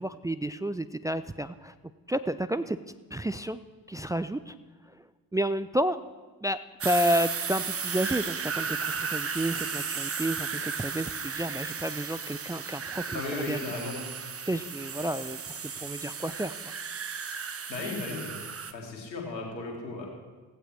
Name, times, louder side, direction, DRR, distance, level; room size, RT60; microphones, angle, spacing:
voice 1, 0.0-1.7 2.1-2.8 3.1-3.6 3.9-4.6 4.9-5.0 5.3-6.0 6.4-13.6 14.5-16.7, right 1 dB, 10° right, 13 dB, 0.4 m, -31 dB
sound 1, 6.8-18.7, right 6 dB, 30° right, 1.1 m, -35 dB
voice 2, 13.1-14.0 17.3-18.4 18.7-20.1, left 3 dB, 90° left, 0 dB, 2.2 m, -36 dB
16.5 x 15.5 x 3.2 m, 1.3 s
figure-of-eight pair, 40°, 49 cm